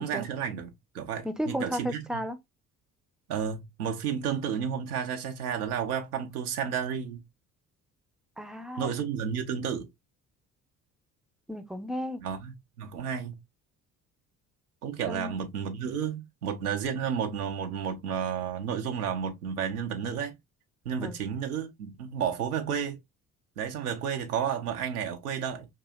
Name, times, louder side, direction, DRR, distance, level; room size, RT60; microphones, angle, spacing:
voice 1, 0.0-2.0 3.3-7.2 8.8-9.9 12.2-13.4 14.8-20.4 20.9-23.0 23.6-25.7, right 7 dB, 85° right, 0.6 m, -32 dB
voice 2, 1.2-2.4 8.4-8.9 11.5-12.2 15.1-15.4 21.0-21.2, equal, ahead, 0.5 m, -34 dB
4.5 x 2.7 x 2.3 m
figure-of-eight pair, 50°, 44 cm